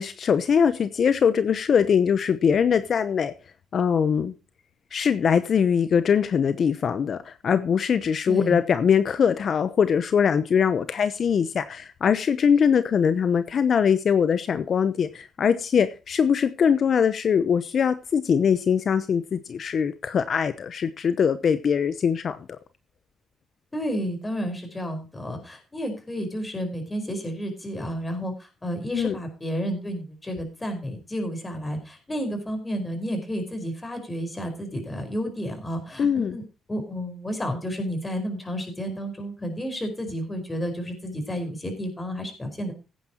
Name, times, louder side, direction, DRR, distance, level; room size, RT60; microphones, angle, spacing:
voice 1, 0.0-3.3 3.7-4.3 4.9-22.4 28.9-29.2 36.0-36.4, left 7 dB, 55° left, 12 dB, 0.8 m, -22 dB
voice 2, 8.3-8.6 23.7-36.4 36.7-42.7, equal, 20° left, 6 dB, 5.0 m, -31 dB
17.0 x 9.5 x 3.0 m, 0.32 s
cardioid pair, 90°, 0 cm